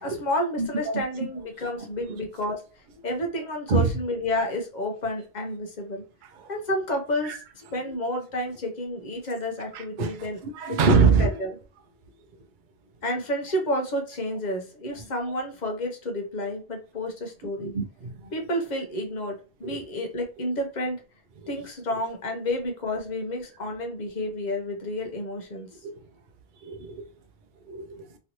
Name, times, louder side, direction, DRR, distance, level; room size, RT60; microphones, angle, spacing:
voice 1, 0.0-2.6 3.0-6.0 6.5-7.4 7.7-10.4 10.7-11.5 13.0-17.7 18.3-21.0 21.5-25.7, left 1 dB, 45° left, 0.9 m, -30 dB
voice 2, 0.6-1.0 3.7-3.9 6.4-6.5 7.2-7.4 9.7-10.2 10.5-11.4 15.0-15.1 17.6-18.2 19.6-19.8 21.4-21.5 25.8-25.9 26.6-27.0 27.7-28.1, right 5 dB, 55° right, 0.7 m, -24 dB
3.1 x 2.7 x 2.9 m
omnidirectional pair, 1.1 m